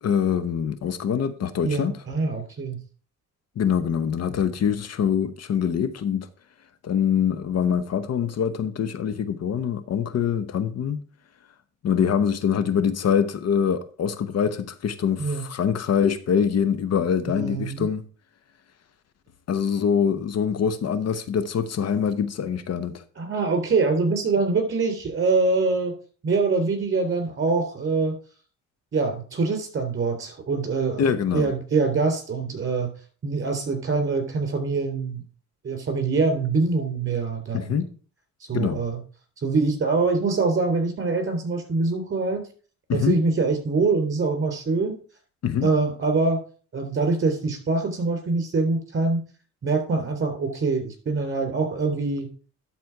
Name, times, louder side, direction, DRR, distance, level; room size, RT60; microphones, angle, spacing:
voice 1, 0.0-1.9 3.6-6.3 6.8-11.0 11.8-18.0 19.5-23.0 31.0-31.5 37.5-37.9 38.5-38.8 42.9-43.2 45.4-45.7, left 7 dB, 55° left, 0.9 m, -24 dB
voice 2, 1.6-2.8 15.2-15.4 17.3-17.9 23.2-26.0 26.2-28.2 28.9-32.9 33.2-35.2 35.6-37.8 38.5-39.0 39.4-42.4 42.9-45.0 45.6-46.4 46.7-49.2 49.6-52.3, right 4 dB, 40° right, 3.6 m, -24 dB
11.5 x 4.3 x 4.7 m
cardioid pair, 90°, 30 cm